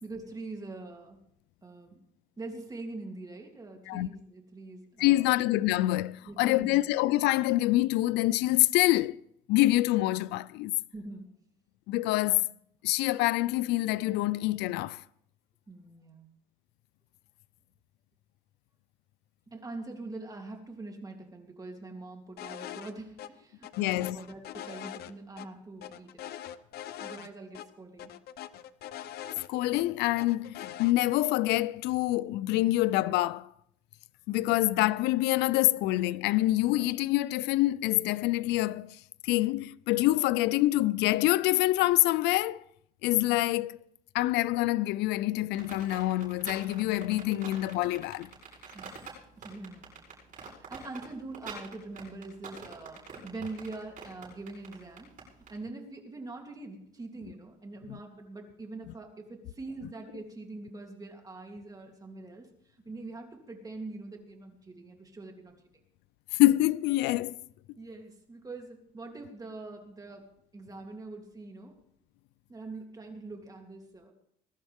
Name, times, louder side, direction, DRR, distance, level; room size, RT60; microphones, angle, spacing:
voice 1, 0.0-1.2 1.6-2.0 2.4-5.3 6.2-6.9 10.9-11.3 15.7-16.3 19.5-26.2 27.0-28.1 48.7-48.9 49.4-49.9 50.7-55.1 55.5-65.5 67.8-71.8 72.5-74.1, right 2 dB, 20° right, 3.1 m, -43 dB
voice 2, 5.0-9.2 9.5-10.7 11.9-12.4 12.8-15.0 23.8-24.2 29.5-33.5 34.3-39.0 39.2-42.6 43.0-43.8 44.1-48.3 57.9-58.0 66.4-67.4, left 17 dB, 90° left, 0.4 m, -26 dB
sound 1, 22.4-22.9 23.2-23.3 23.6-25.5 25.8-27.3 27.5-27.7 28.0-29.8 30.2-30.9, left 11 dB, 70° left, 0.8 m, -42 dB
sound 2, 45.5-55.5, right 6 dB, 50° right, 7.8 m, -45 dB
21.5 x 12.0 x 3.6 m
cardioid pair, 110°, 17 cm